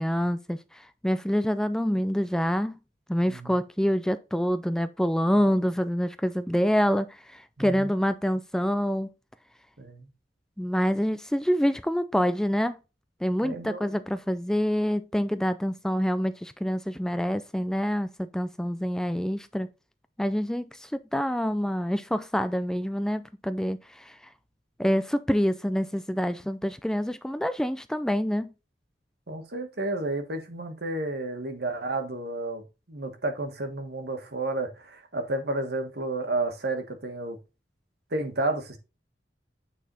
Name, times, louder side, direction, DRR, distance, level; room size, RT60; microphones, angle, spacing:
voice 1, 0.0-2.8 3.1-9.1 10.6-12.8 13.2-19.7 20.2-24.2 24.8-28.5, equal, 5° left, 0.3 m, -26 dB
voice 2, 7.6-7.9 9.8-10.1 13.4-14.0 29.3-32.6 32.9-37.4 38.1-38.8, right 2 dB, 65° right, 1.6 m, -31 dB
9.1 x 4.0 x 4.0 m
head